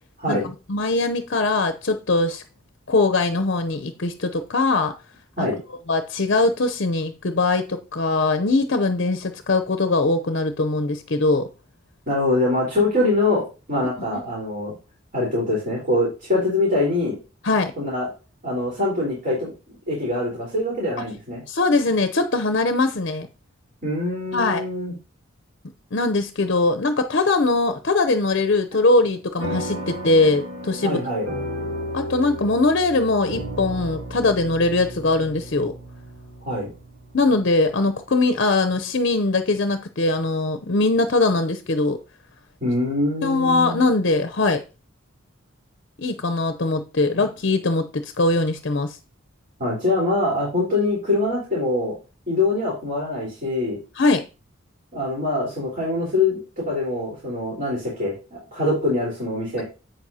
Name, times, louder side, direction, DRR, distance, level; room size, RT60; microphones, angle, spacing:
voice 1, 0.7-2.4 2.9-4.9 5.4-5.5 5.9-11.5 14.1-14.2 17.4-17.7 21.5-23.3 24.3-24.6 25.9-31.0 31.9-35.7 37.1-42.0 43.2-44.6 46.0-49.0 53.9-54.2, left 3 dB, 55° left, 0.7 m, -21 dB
voice 2, 12.1-13.4 13.7-14.7 15.1-17.2 17.8-18.1 18.4-19.5 19.9-21.4 23.8-24.9 30.8-31.3 36.4-36.7 42.6-43.8 49.6-51.9 52.3-53.8 54.9-59.6, left 2 dB, 45° right, 4.1 m, -23 dB
sound 1, 29.4-38.2, equal, 70° right, 4.6 m, -34 dB
11.0 x 8.0 x 2.8 m
head